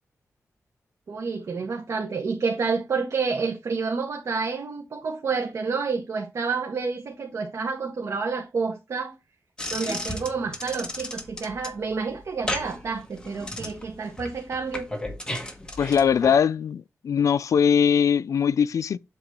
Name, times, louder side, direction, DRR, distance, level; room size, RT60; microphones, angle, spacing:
voice 1, 1.1-9.1 9.7-14.9, right 5 dB, 65° right, 1.3 m, -29 dB
sound 1, 9.6-16.4, left 1 dB, 15° left, 1.2 m, -35 dB
voice 2, 15.8-19.0, left 7 dB, 75° left, 0.4 m, -21 dB
7.9 x 3.0 x 6.0 m
wide cardioid pair, 120°, 6 cm